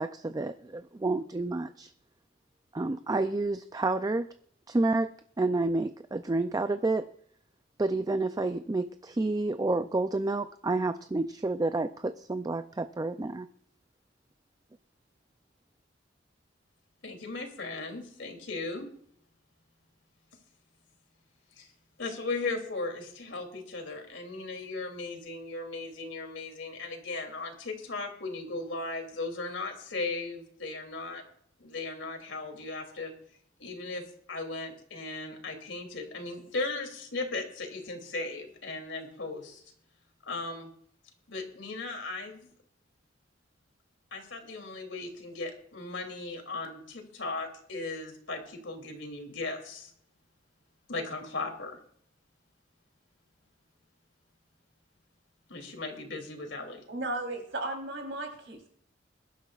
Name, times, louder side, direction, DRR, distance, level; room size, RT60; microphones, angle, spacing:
voice 1, 0.0-1.9 2.7-4.3 4.7-5.1 5.4-7.1 7.8-13.5, right 2 dB, 20° right, 10 dB, 0.4 m, -29 dB
voice 2, 17.0-18.9 21.6-21.7 22.0-31.2 31.6-33.1 33.6-34.0 34.3-39.6 40.2-40.7 41.3-42.4 44.1-49.9 50.9-51.8 55.5-56.8, left 3 dB, 80° left, 3 dB, 2.9 m, -37 dB
voice 3, 56.9-58.7, right 2 dB, 75° right, 2 dB, 3.6 m, -35 dB
22.0 x 11.5 x 2.4 m, 0.63 s
head